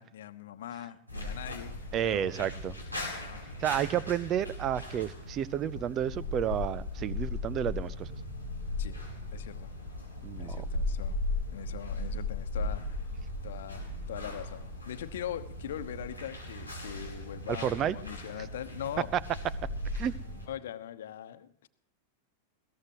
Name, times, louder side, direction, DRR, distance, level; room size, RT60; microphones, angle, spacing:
voice 1, 0.0-2.5 3.2-3.5 8.8-9.0 9.3-9.7 10.3-11.2 11.5-13.1 13.4-19.1 20.5-21.7, left 10 dB, 60° left, 11 dB, 1.1 m, -41 dB
sound 1, 1.1-20.5, left 2 dB, 90° right, 5.5 m, -37 dB
voice 2, 1.9-2.7 3.6-8.1 10.2-10.6 17.6-18.0 19.9-20.1, right 10 dB, 30° right, 21 dB, 0.7 m, -31 dB
21.0 x 18.0 x 3.1 m, 0.67 s
figure-of-eight pair, 90°, 0 cm